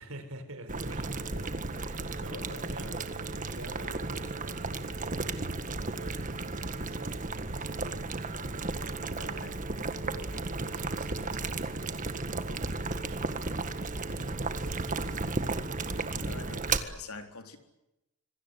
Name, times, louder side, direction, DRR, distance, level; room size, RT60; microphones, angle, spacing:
voice 1, 0.0-9.0 9.6-15.3, right 1 dB, 70° right, 9 dB, 5.0 m, -48 dB
Boiling, 0.7-16.8, right 3 dB, 35° right, 1.7 m, -34 dB
voice 2, 2.1-2.6 9.1-9.5 10.0-10.4 16.1-17.6, left 4 dB, 90° left, 6 dB, 4.0 m, -46 dB
26.0 x 24.0 x 8.2 m, 0.93 s
head